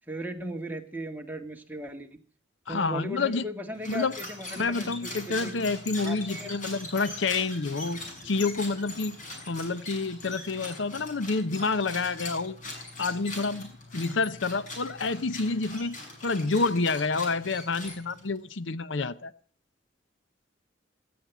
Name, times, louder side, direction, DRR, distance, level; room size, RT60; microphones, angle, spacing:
voice 1, 0.1-2.2 2.7-5.8 6.0-6.5, equal, 10° right, 1.9 m, -37 dB
voice 2, 2.7-3.4 3.9-4.1 4.5-9.2 9.5-12.6 13.0-19.3, left 3 dB, 70° left, 0.7 m, -28 dB
sound 1, 3.7-18.4, left 2 dB, 40° left, 6.4 m, -41 dB
17.5 x 13.0 x 6.0 m
head